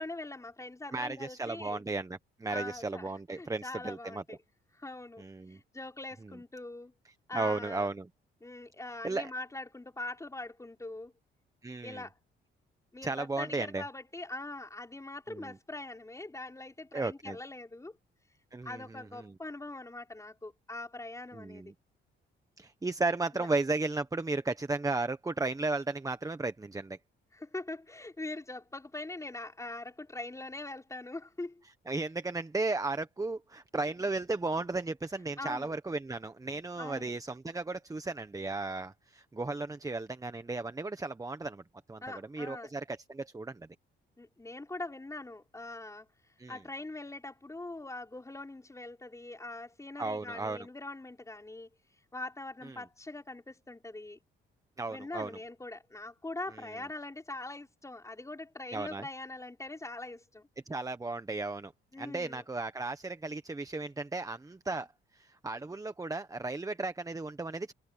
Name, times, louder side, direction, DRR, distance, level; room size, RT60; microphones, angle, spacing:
voice 1, 0.0-1.8 2.5-4.4 4.7-6.9 7.3-7.9 8.4-11.1 11.8-12.1 12.9-18.0 18.6-21.7 23.3-23.5 27.3-31.6 35.4-35.7 36.8-37.1 42.0-42.7 44.2-46.1 46.5-51.7 52.1-54.2 54.9-60.5 61.9-62.4, left 2 dB, 15° left, 5.2 m, -42 dB
voice 2, 0.9-4.2 5.2-5.6 7.3-8.1 9.0-9.3 11.6-12.0 13.0-13.8 15.3-15.5 16.9-17.4 18.5-19.3 21.3-21.7 22.6-27.0 31.9-41.6 41.9-43.7 46.4-46.6 50.0-50.7 52.6-52.8 54.8-55.4 56.5-56.7 58.7-59.1 60.7-61.7 62.0-64.9 65.1-67.7, right 3 dB, 15° right, 1.3 m, -35 dB
cardioid pair, 90°, 20 cm